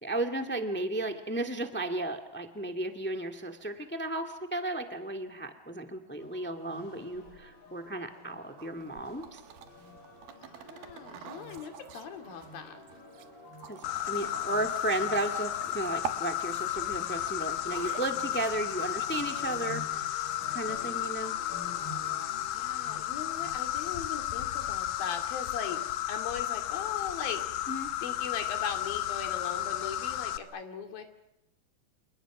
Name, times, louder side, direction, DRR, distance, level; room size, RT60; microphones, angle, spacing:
voice 1, 0.0-9.4 13.7-21.4 27.7-27.9, right 2 dB, 10° left, 5 dB, 0.5 m, -34 dB
sound 1, 6.2-24.0, left 2 dB, 30° left, 7.9 m, -50 dB
sound 2, 8.6-20.2, right 7 dB, 90° right, 3.3 m, -46 dB
voice 2, 10.4-12.8 22.5-25.8 26.1-27.7 28.0-31.0, left 6 dB, 90° left, 5 dB, 4.4 m, -39 dB
Insect, 13.8-30.4, left 13 dB, 75° left, 2.8 m, -33 dB
29.5 x 29.0 x 6.0 m, 0.85 s
omnidirectional pair, 4.0 m